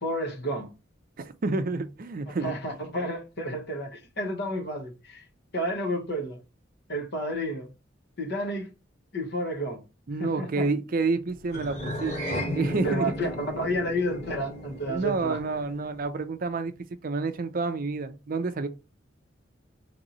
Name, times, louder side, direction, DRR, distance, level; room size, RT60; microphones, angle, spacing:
voice 1, 0.0-0.7 2.4-5.2 5.5-6.4 6.9-7.7 8.2-8.7 9.1-9.8 10.2-10.7 12.8-15.4, equal, 60° left, 1.1 m, -31 dB
voice 2, 1.4-2.5 10.1-13.1 14.9-16.7 17.0-18.7, right 3 dB, 45° right, 0.5 m, -29 dB
sound 1, 11.5-16.1, equal, 35° left, 1.7 m, -35 dB
3.6 x 3.0 x 3.9 m
head